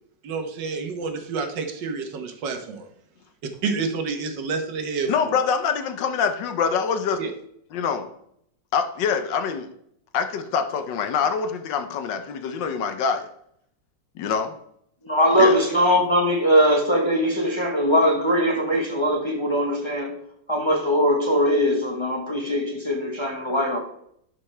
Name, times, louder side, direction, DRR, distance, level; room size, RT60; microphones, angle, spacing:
voice 1, 0.2-2.9 3.6-5.3 7.2-7.3, right 4 dB, 70° right, 1.7 m, -29 dB
voice 2, 5.1-7.2 7.7-8.1 8.7-9.7 10.1-13.3 14.2-14.5 15.4-15.5, left 6 dB, 70° left, 1.4 m, -25 dB
voice 3, 15.0-20.1 20.5-23.8, equal, 20° left, 0.9 m, -21 dB
12.0 x 6.0 x 3.3 m
omnidirectional pair, 2.1 m